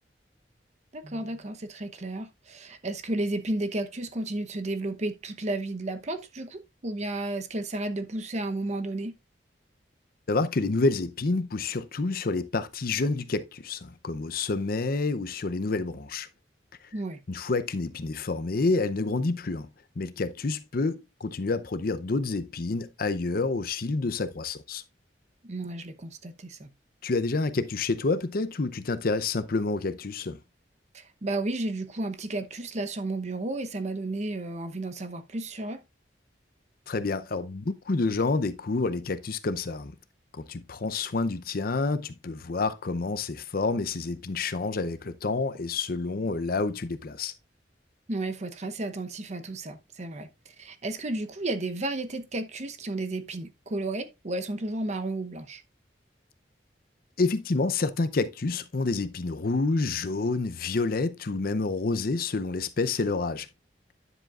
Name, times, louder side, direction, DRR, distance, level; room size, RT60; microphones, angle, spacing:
voice 1, 0.9-9.1 16.9-17.2 25.4-26.7 30.9-35.8 48.1-55.6, right 2 dB, 40° right, 0.8 m, -33 dB
voice 2, 10.3-16.3 17.3-19.7 20.0-24.8 27.0-30.4 36.9-39.9 40.3-47.3 57.2-63.5, left 3 dB, 55° left, 0.6 m, -28 dB
9.9 x 7.4 x 2.4 m
head